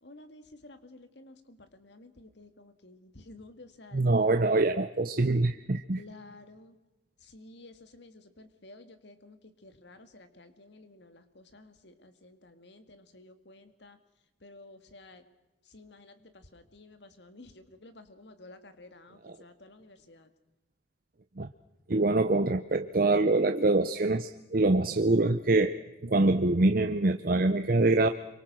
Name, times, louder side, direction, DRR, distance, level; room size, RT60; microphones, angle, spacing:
voice 1, 0.0-4.0 6.0-6.8 7.2-14.0 14.4-15.2 15.6-20.3, left 2 dB, 65° left, 9 dB, 2.0 m, -52 dB
voice 2, 3.9-6.0 19.2-19.3 21.4-21.5 21.9-28.1, right 2 dB, 45° right, 8 dB, 0.7 m, -25 dB
26.0 x 24.5 x 6.2 m, 1.0 s
head